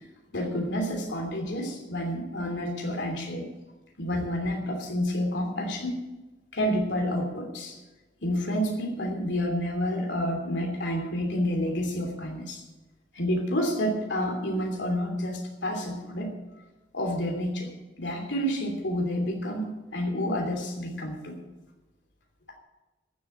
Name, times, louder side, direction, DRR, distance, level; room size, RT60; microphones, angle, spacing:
voice 1, 0.3-3.4 4.0-5.9 6.5-7.7 8.2-12.6 13.1-16.3 16.9-17.7 18.0-19.7 19.9-21.4, equal, 75° left, 2 dB, 3.1 m, -29 dB
14.0 x 7.7 x 8.2 m, 1.1 s
head